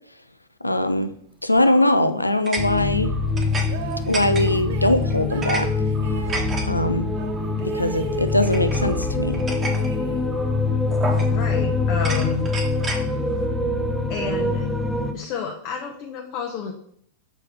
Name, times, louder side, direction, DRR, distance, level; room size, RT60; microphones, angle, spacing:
voice 1, 0.6-1.1 1.4-3.1 4.1-5.7 6.7-7.1 7.6-9.4, left 1 dB, 85° left, 10 dB, 0.4 m, -21 dB
sound 1, 1.6-1.9 2.5-3.7 3.9-4.7 5.1-5.6 5.9-6.6 7.4-7.6 8.4-9.9 10.3-10.5 10.9-11.5 11.9-13.0, right 3 dB, 20° right, 1.1 m, -32 dB
sound 2, 2.6-15.1, left 3 dB, 5° left, 0.6 m, -24 dB
sound 3, 3.6-6.5 7.2-9.1 9.5-10.5, right 6 dB, 55° right, 0.7 m, -37 dB
voice 2, 11.2-12.5 14.1-14.7 15.1-16.7, left 6 dB, 45° left, 2 dB, 0.8 m, -30 dB
6.2 x 4.5 x 3.4 m, 0.65 s
figure-of-eight pair, 90°, 0 cm